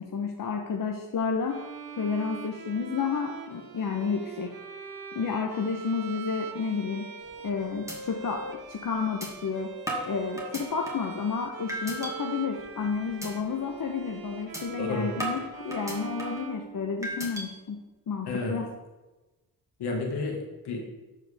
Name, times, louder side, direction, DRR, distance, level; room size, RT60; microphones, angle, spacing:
voice 1, 0.0-1.6 2.0-4.5 5.1-7.1 7.4-9.7 10.1-17.8 18.1-18.6, left 5 dB, 55° left, 1 dB, 1.0 m, -31 dB
Bowed string instrument, 1.5-17.3, right 6 dB, 60° right, 1.0 m, -42 dB
sound 1, 7.2-7.5 7.9-8.0 8.4-8.5 9.2-9.3 9.9-11.1 11.7-12.1 12.6-12.8 13.2-13.3 13.7-13.9 14.5-14.6 15.2-16.5 17.0-17.5, right 1 dB, 10° right, 2.2 m, -35 dB
voice 2, 14.8-15.1 18.3-18.6 19.8-21.0, left 3 dB, 75° left, 1 dB, 1.9 m, -31 dB
13.5 x 4.6 x 3.5 m, 1.1 s
cardioid pair, 65°, 40 cm